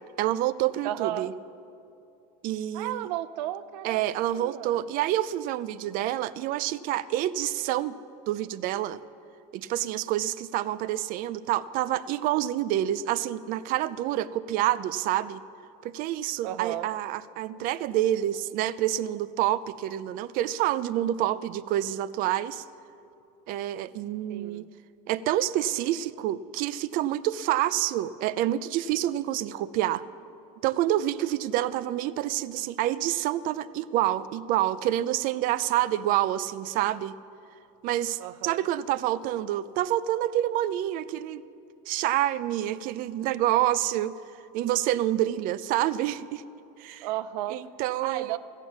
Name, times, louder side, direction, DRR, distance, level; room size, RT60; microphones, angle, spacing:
voice 1, 0.2-1.3 2.4-3.1 3.8-7.9 8.3-9.0 9.5-15.4 15.8-22.6 23.5-24.7 25.1-30.0 30.6-37.1 37.8-41.4 41.9-44.1 44.5-46.4 46.8-47.1 47.5-48.4, right 13 dB, 45° right, 16 dB, 0.4 m, -27 dB
voice 2, 0.8-1.3 2.7-4.0 4.3-4.9 16.4-16.9 24.3-24.7 38.2-38.6 47.0-47.6 48.0-48.4, right 14 dB, 90° right, 14 dB, 0.6 m, -33 dB
14.5 x 9.0 x 7.2 m, 2.6 s
cardioid pair, 155°, 21 cm